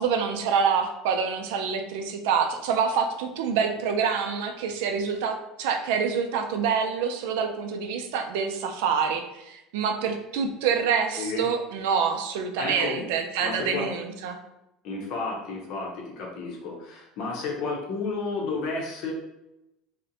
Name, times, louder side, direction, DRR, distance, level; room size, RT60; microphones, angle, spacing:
voice 1, 0.0-14.4, right 6 dB, 80° right, 5 dB, 0.3 m, -26 dB
voice 2, 12.6-13.0 13.4-13.9 14.8-19.1, left 3 dB, 60° left, -1 dB, 0.7 m, -32 dB
2.4 x 2.1 x 2.7 m, 0.90 s
supercardioid pair, 130°, 0 cm